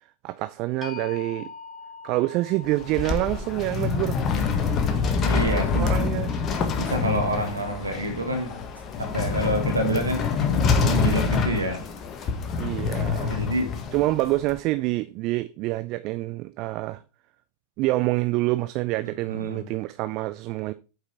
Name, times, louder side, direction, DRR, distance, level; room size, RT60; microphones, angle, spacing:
voice 1, 0.2-1.5 2.0-4.5 4.8-5.0 5.7-6.3 12.6-13.4 13.9-17.0 17.8-20.7, right 18 dB, 45° right, 0.4 m, -27 dB
sound 1, 0.8-6.8, left 5 dB, 20° left, 2.4 m, -44 dB
sound 2, 2.6-14.5, left 5 dB, 35° left, 1.4 m, -26 dB
voice 2, 5.2-5.9 6.8-8.6 9.0-10.2 10.8-11.8 13.3-13.7 19.3-19.6, right 1 dB, 85° right, 1.8 m, -27 dB
7.9 x 5.5 x 4.4 m
figure-of-eight pair, 90°, 0 cm